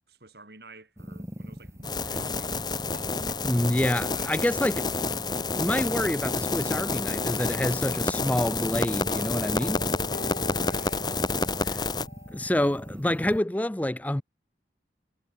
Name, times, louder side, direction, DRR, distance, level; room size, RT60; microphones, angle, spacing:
voice 1, 0.1-2.9 3.9-4.5 10.5-11.7, right 3 dB, 65° right, 5.5 m, -51 dB
sound 1, 1.0-13.4, equal, 15° right, 2.6 m, -41 dB
sound 2, 1.8-12.1, left 3 dB, 25° left, 1.5 m, -29 dB
voice 2, 3.4-4.9 5.5-9.8 11.6-11.8 12.3-14.2, left 1 dB, 10° left, 0.4 m, -27 dB
sound 3, 8.7-12.9, left 2 dB, 50° left, 4.0 m, -45 dB
head